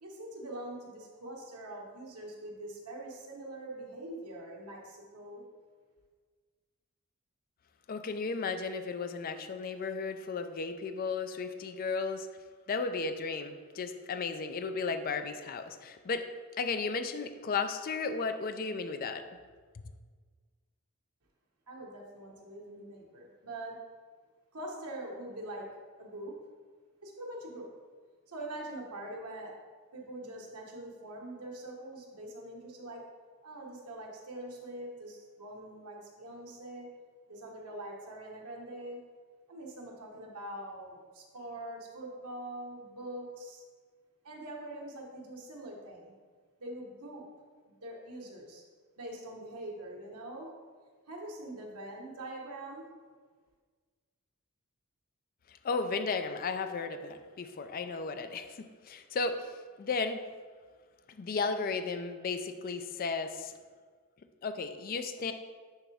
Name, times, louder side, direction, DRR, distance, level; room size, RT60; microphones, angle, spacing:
voice 1, 0.0-5.4 21.7-23.8 24.5-25.7 26.0-26.3 27.0-27.7 28.3-29.5 29.9-33.0 33.4-36.9 37.3-39.0 39.5-43.6 44.2-46.1 46.6-47.2 47.7-48.6 49.0-50.5 51.1-52.9, right 1 dB, 85° right, -1 dB, 1.3 m, -43 dB
voice 2, 7.9-12.3 12.7-16.3 16.6-19.3 55.5-60.2 61.1-63.5 64.4-65.3, left 4 dB, 40° left, 9 dB, 0.4 m, -34 dB
9.9 x 3.4 x 3.5 m, 1.5 s
head